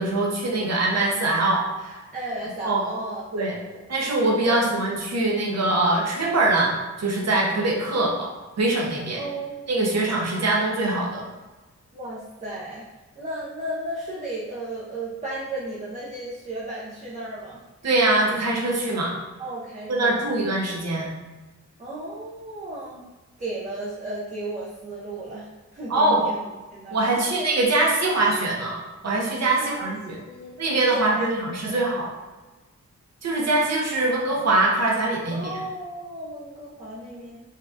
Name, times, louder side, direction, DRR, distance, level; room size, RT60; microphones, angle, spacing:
voice 1, 0.0-2.0 2.6-2.8 3.3-3.6 3.9-8.3 8.6-9.2 9.7-11.2 17.8-19.1 19.9-21.1 25.9-26.2 26.9-30.2 30.6-32.1 33.2-35.6, right 2 dB, 60° right, -2 dB, 0.8 m, -23 dB
voice 2, 2.1-3.8 4.4-4.6 9.2-9.6 11.9-12.8 13.2-17.6 19.4-20.3 21.8-23.0 23.4-25.5 25.7-26.4 26.7-27.2 29.6-29.9 30.2-30.6 30.9-31.2 31.6-31.9 35.3-37.4, right 2 dB, 25° right, -7 dB, 0.5 m, -34 dB
3.9 x 2.2 x 2.6 m, 1.2 s
wide cardioid pair, 145°, 30 cm